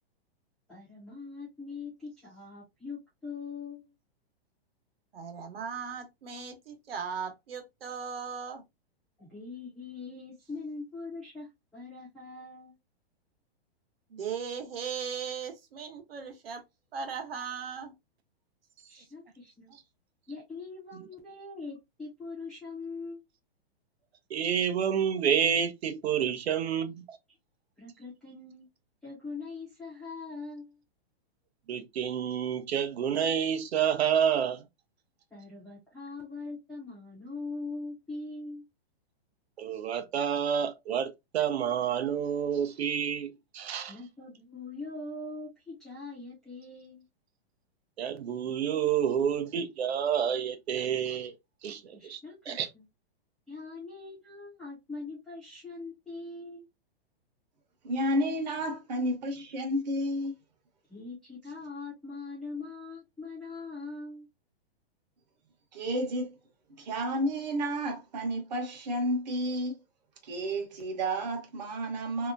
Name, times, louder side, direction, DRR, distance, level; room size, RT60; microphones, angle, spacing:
voice 1, 0.7-3.8 9.2-12.7 18.9-19.7 20.3-23.2 27.8-28.7 29.0-30.8 35.3-38.6 43.9-47.0 51.9-52.8 53.5-56.7 60.9-64.3, left 3 dB, ahead, 0.5 m, -42 dB
voice 2, 5.1-8.6 14.1-16.6 16.9-17.9 19.7-19.8, right 6 dB, 65° right, 1.1 m, -38 dB
voice 3, 24.3-27.2 31.7-34.6 39.6-44.0 48.0-51.3 51.6-52.2 52.5-52.7, right 8 dB, 85° right, 0.7 m, -29 dB
voice 4, 57.8-60.3 65.7-66.4 66.8-69.8 70.2-72.3, equal, 45° right, 1.0 m, -31 dB
3.3 x 2.8 x 2.5 m
hypercardioid pair, 180°, 31 cm